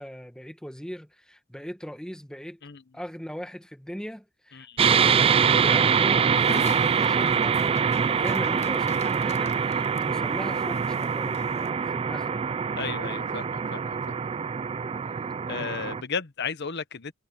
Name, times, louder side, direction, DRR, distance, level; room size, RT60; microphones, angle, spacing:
voice 1, 0.0-2.6 2.9-12.6, equal, 5° left, 1.5 m, -39 dB
sound 1, 4.8-16.0, right 6 dB, 25° right, 0.3 m, -24 dB
Dog, 6.3-11.7, left 5 dB, 30° left, 0.6 m, -45 dB
voice 2, 12.8-14.2 15.5-17.1, left 5 dB, 55° left, 1.1 m, -34 dB
head